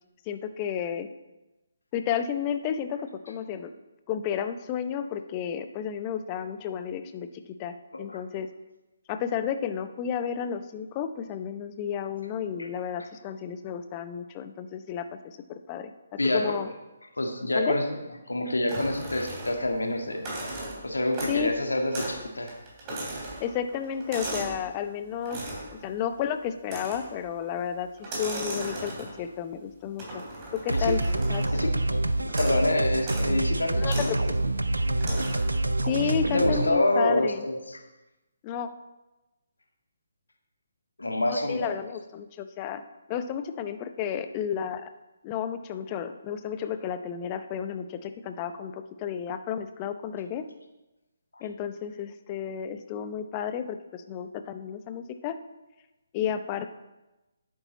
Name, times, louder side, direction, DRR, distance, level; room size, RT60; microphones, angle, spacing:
voice 1, 0.3-1.1 1.9-3.0 3.3-3.7 4.1-7.3 7.6-8.5 9.1-15.9 16.3-16.7 17.5-17.8 21.3-21.5 23.4-25.4 25.8-27.9 28.2-30.2 30.5-31.0 31.3-31.4 33.8-34.2 35.8-37.4 38.4-38.7 41.3-42.8 43.1-44.9 45.2-50.5 51.4-55.4 56.1-56.8, left 8 dB, 25° left, 10 dB, 0.7 m, -32 dB
voice 2, 16.2-16.5 17.2-17.8 18.3-20.3 20.8-22.5 30.7-30.9 31.5-31.7 32.2-34.1 36.0-37.8 41.0-41.7 51.3-51.4, left 1 dB, 80° left, 3 dB, 1.8 m, -27 dB
sound 1, 18.7-19.8 20.1-21.5 21.9-22.2 22.5-24.6 25.3-25.7 26.6-27.2 28.0-29.3 30.0-31.7 32.3-32.6 33.0-33.3 33.8-34.2 35.0-35.6, right 1 dB, 25° right, 3.5 m, -36 dB
sound 2, 30.7-36.7, right 2 dB, 80° right, 0.6 m, -26 dB
10.0 x 8.5 x 4.1 m, 1.0 s
figure-of-eight pair, 140°, 0 cm